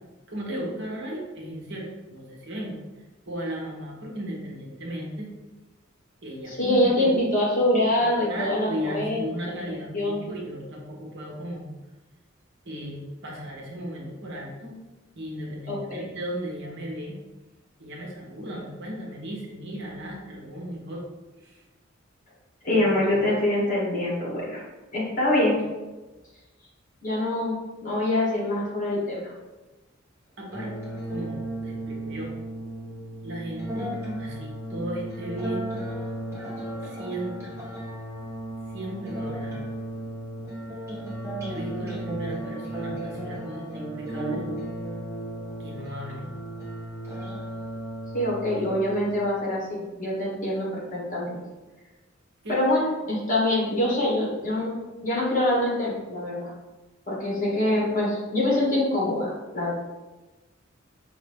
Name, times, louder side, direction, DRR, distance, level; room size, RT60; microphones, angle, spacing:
voice 1, 0.3-5.3 6.2-7.2 8.0-11.7 12.6-14.8 15.2-17.2 17.8-21.1 21.4-21.6 22.7-23.2 30.4-30.7 31.1-32.3 33.2-35.7 36.8-37.6 38.7-39.6 41.5-44.4 45.6-46.3 52.4-52.6, right 1 dB, 60° right, -2 dB, 1.0 m, -36 dB
voice 2, 6.5-10.2 15.7-16.1 22.6-24.6 24.9-25.6 27.0-29.3 48.1-51.4 52.5-54.7 55.0-56.5 57.1-59.7, left 1 dB, 40° left, -4 dB, 1.5 m, -25 dB
sound 1, 30.5-49.5, right 1 dB, 15° right, 1.1 m, -35 dB
5.2 x 2.7 x 3.5 m, 1.2 s
head